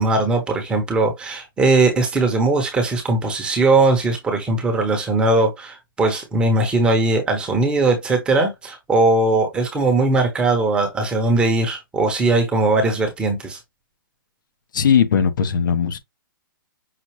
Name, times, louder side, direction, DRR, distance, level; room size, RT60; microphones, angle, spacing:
voice 1, 0.0-13.6, right 2 dB, 10° right, 0.9 m, -19 dB
voice 2, 14.7-16.0, left 7 dB, 65° left, 1.0 m, -18 dB
5.8 x 2.4 x 3.1 m
hypercardioid pair, 160°, 12 cm